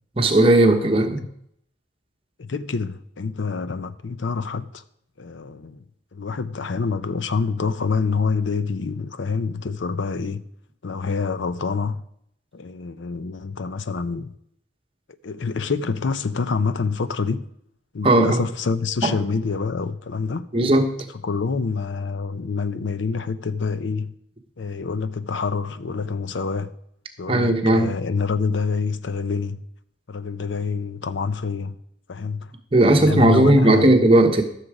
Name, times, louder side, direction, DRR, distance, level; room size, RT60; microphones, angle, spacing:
voice 1, 0.2-1.2 18.0-18.4 19.0-19.1 20.5-20.9 27.3-27.9 32.7-34.4, right 1 dB, 30° right, 1.0 m, -16 dB
voice 2, 0.7-1.3 2.4-4.8 5.2-5.8 6.1-10.4 10.8-12.0 12.5-14.3 15.2-17.5 17.9-20.5 21.2-24.1 24.6-26.7 27.2-29.6 30.1-31.8 32.1-32.5 32.8-33.9, left 4 dB, 75° left, 0.6 m, -26 dB
14.0 x 6.7 x 4.9 m
head